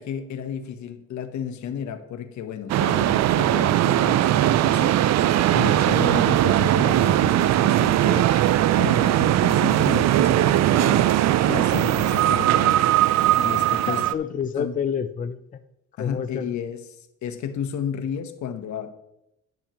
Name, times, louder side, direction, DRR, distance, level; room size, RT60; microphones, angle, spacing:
voice 1, 0.0-8.3 8.8-13.0 13.3-14.0 14.6-14.8 16.0-16.8 17.2-18.9, left 8 dB, 70° left, 1.1 m, -32 dB
sound 1, 2.7-14.1, right 13 dB, 60° right, 0.5 m, -19 dB
voice 2, 13.7-15.6 16.0-16.6, left 7 dB, 30° left, 0.4 m, -29 dB
10.5 x 10.5 x 3.0 m
cardioid pair, 95°, 30 cm